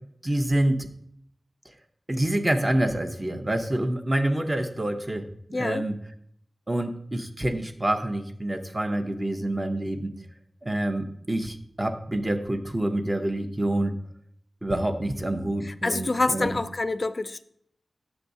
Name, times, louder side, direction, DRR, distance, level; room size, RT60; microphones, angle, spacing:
voice 1, 0.2-0.9 2.1-5.9 6.7-10.1 10.6-13.9 14.6-16.6, right 1 dB, 20° right, 0.7 m, -27 dB
voice 2, 5.5-5.9 15.6-17.4, left 2 dB, 40° left, 0.4 m, -27 dB
9.6 x 6.9 x 2.7 m
wide cardioid pair, 85°, 0 cm